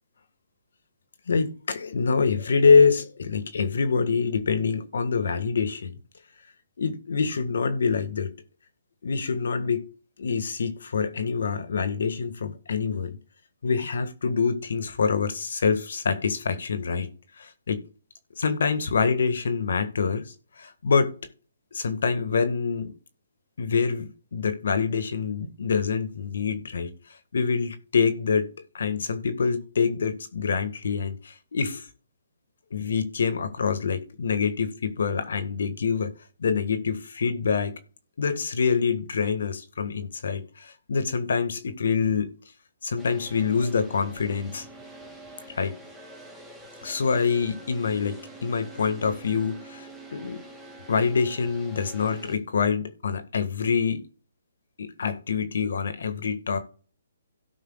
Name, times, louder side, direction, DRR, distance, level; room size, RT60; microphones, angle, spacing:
voice 1, 1.3-6.0 6.8-8.3 9.0-9.8 10.2-13.2 13.6-17.1 17.4-17.8 18.4-21.1 21.7-22.9 23.6-26.9 27.3-31.9 32.7-36.1 36.4-37.7 38.2-42.3 42.8-44.7 45.5-45.7 46.8-50.4 50.9-54.1 54.8-56.6, left 5 dB, 70° left, 1.6 m, -25 dB
sound 1, 43.0-52.4, right 2 dB, ahead, 2.0 m, -46 dB
17.0 x 5.8 x 2.3 m
hypercardioid pair, 145°, 0 cm